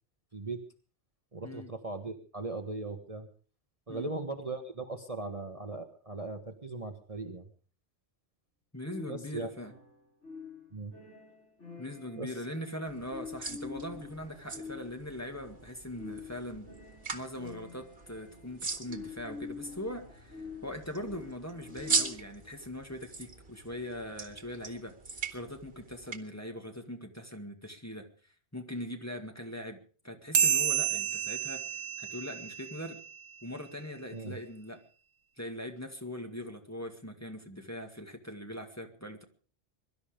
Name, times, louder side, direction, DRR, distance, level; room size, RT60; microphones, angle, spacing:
voice 1, 1.3-3.3 3.9-7.5 9.1-9.5 10.7-10.9 12.2-12.3 34.1-34.4, right 3 dB, 30° right, 6 dB, 1.4 m, -38 dB
voice 2, 8.7-9.7 11.8-16.7 17.1-25.0 25.3-28.1 28.5-33.0 33.4-34.8 35.4-39.2, left 1 dB, 15° left, 3 dB, 2.0 m, -41 dB
sound 1, 8.8-22.4, left 5 dB, 90° left, 5.8 m, -47 dB
sound 2, 12.9-26.2, right 4 dB, 55° right, 1.9 m, -40 dB
sound 3, 30.3-33.2, right 7 dB, 80° right, 1.3 m, -30 dB
22.5 x 12.5 x 5.1 m, 0.41 s
omnidirectional pair, 1.2 m